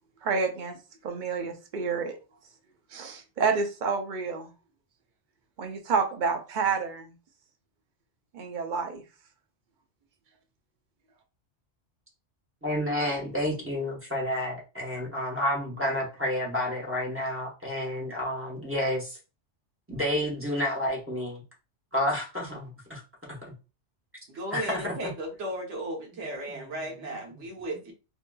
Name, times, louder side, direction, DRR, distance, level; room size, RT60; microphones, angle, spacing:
voice 1, 0.2-0.8 1.0-2.2 2.9-4.5 5.6-7.1 8.3-9.0, right 5 dB, 55° right, 0.6 m, -29 dB
voice 2, 12.6-19.2 19.9-21.4 21.9-23.0 24.5-25.1 26.5-26.6, left 1 dB, 10° right, 0.9 m, -30 dB
voice 3, 24.3-27.9, right 1 dB, 70° right, 1.1 m, -35 dB
2.7 x 2.6 x 2.2 m
omnidirectional pair, 1.3 m